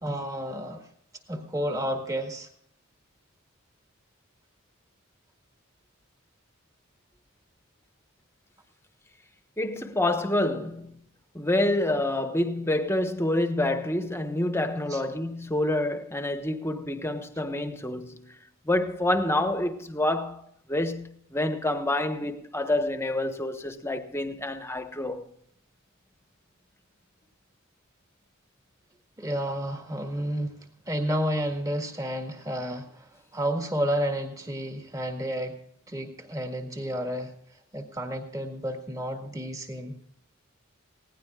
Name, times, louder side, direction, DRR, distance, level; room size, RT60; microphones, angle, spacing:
voice 1, 0.0-0.9 1.3-2.5 14.9-15.0 29.2-35.6 35.9-37.3 37.7-40.0, equal, 15° right, 1.8 m, -31 dB
voice 2, 9.6-10.9 11.3-18.4 18.6-20.4 20.7-25.3, left 1 dB, 10° left, 1.2 m, -27 dB
20.5 x 17.0 x 2.4 m
head